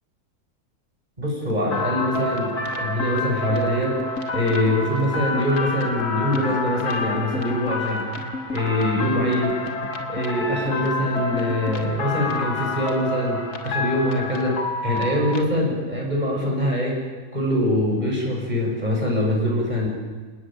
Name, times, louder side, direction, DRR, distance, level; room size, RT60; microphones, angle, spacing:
voice 1, 1.2-3.9 4.3-8.0 8.5-9.6 10.1-14.6 14.8-17.0 17.3-19.9, left 1 dB, 25° right, -1 dB, 7.6 m, -23 dB
sound 1, 1.3-13.9 14.2-15.2 15.5-15.9 16.2-16.8, left 3 dB, 55° left, 2.3 m, -37 dB
sound 2, 1.7-15.4, left 2 dB, 70° left, 2.9 m, -29 dB
27.5 x 19.5 x 9.2 m, 1.4 s
omnidirectional pair, 1.7 m